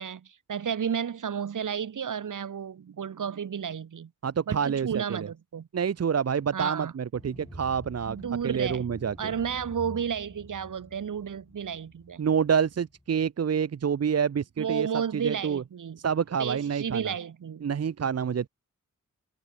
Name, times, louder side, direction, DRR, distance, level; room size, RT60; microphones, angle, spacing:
voice 1, 0.0-4.1 4.5-5.7 6.5-6.9 8.1-8.9 9.2-12.3 14.6-16.0 16.4-17.7, right 7 dB, 70° right, 2.3 m, -32 dB
voice 2, 4.2-5.3 5.7-8.2 8.4-9.3 12.2-14.9 15.1-15.6 16.0-17.1 17.6-18.5, right 7 dB, 50° right, 0.9 m, -27 dB
sound 1, 7.1-13.1, left 1 dB, 10° left, 3.8 m, -47 dB
wide cardioid pair, 95°, 32 cm